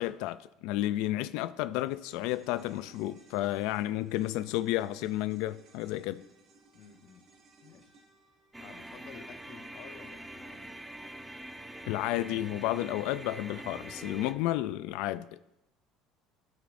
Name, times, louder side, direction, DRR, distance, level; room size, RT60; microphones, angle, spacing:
voice 1, 0.0-6.2 11.9-15.4, left 15 dB, 75° left, 0.3 m, -32 dB
sound 1, 1.7-10.2 10.5-10.6, right 3 dB, 55° right, 1.7 m, -61 dB
voice 2, 6.7-7.3 7.6-7.9 8.6-10.7, left 7 dB, 55° left, 1.0 m, -52 dB
sound 2, 8.5-14.3, right 1 dB, 10° right, 0.8 m, -44 dB
17.5 x 6.1 x 2.6 m
supercardioid pair, 110°, 0 cm